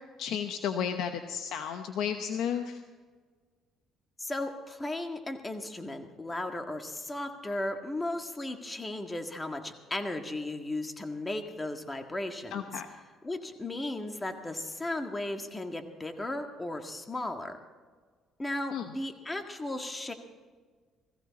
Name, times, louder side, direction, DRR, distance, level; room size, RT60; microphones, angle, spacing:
voice 1, 0.2-2.8 12.5-12.9 18.7-18.9, left 8 dB, 75° left, 7 dB, 0.9 m, -33 dB
voice 2, 4.2-12.8 13.2-17.6 18.4-20.1, left 1 dB, 20° left, 5 dB, 1.8 m, -36 dB
18.0 x 15.0 x 4.2 m, 1.5 s
supercardioid pair, 85°, 0 cm